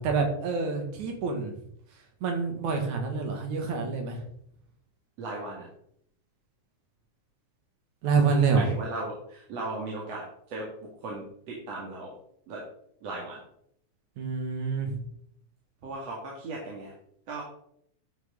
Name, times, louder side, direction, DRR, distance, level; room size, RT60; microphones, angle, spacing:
voice 1, 0.0-1.6 2.2-4.2 8.0-8.7 14.2-15.0, right 5 dB, 75° right, 3 dB, 3.2 m, -27 dB
voice 2, 5.2-5.6 8.5-10.7 11.0-12.1 12.5-12.6 13.0-13.4 15.8-16.9 17.3-17.4, right 2 dB, 55° right, -3 dB, 3.0 m, -36 dB
11.5 x 7.9 x 3.7 m, 0.70 s
omnidirectional pair, 3.5 m